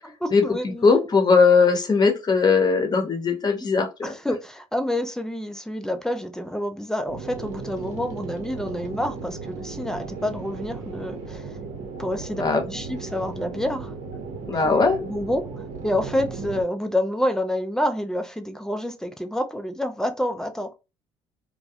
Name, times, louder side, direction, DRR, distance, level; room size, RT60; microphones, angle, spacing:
voice 1, 0.2-1.0 4.0-11.6 12.0-13.9 14.6-15.5 15.8-20.7, left 1 dB, 5° left, 0.4 m, -28 dB
voice 2, 0.8-4.1 12.3-12.6 14.5-15.0, left 4 dB, 30° left, 0.9 m, -19 dB
sound 1, 7.1-16.6, right 4 dB, 60° right, 0.8 m, -36 dB
2.3 x 2.1 x 2.7 m
hypercardioid pair, 60°, 14 cm